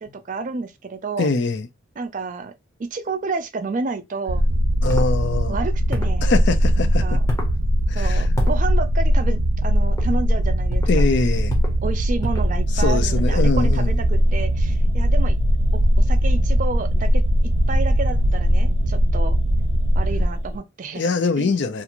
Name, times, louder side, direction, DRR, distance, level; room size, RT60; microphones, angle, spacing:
voice 1, 0.0-1.3 2.0-2.5 2.8-4.5 5.5-6.3 6.8-7.2 7.9-11.0 11.8-15.4 16.0-17.2 17.7-19.4 19.9-21.1 21.4-21.6, right 4 dB, 40° right, 0.4 m, -30 dB
voice 2, 1.2-1.7 4.8-5.6 6.2-7.2 7.9-8.3 10.9-11.6 12.7-14.0 20.9-21.8, left 3 dB, 55° left, 0.4 m, -23 dB
sound 1, 4.3-20.3, equal, 90° right, 0.5 m, -20 dB
sound 2, 4.9-5.1 5.9-6.2 7.3-7.6 8.4-8.6 9.8-10.1 10.7-11.0 11.5-11.8 12.2-12.5, left 1 dB, 15° left, 0.7 m, -29 dB
sound 3, 12.4-20.6, equal, 80° left, 0.9 m, -28 dB
2.5 x 2.4 x 2.9 m
head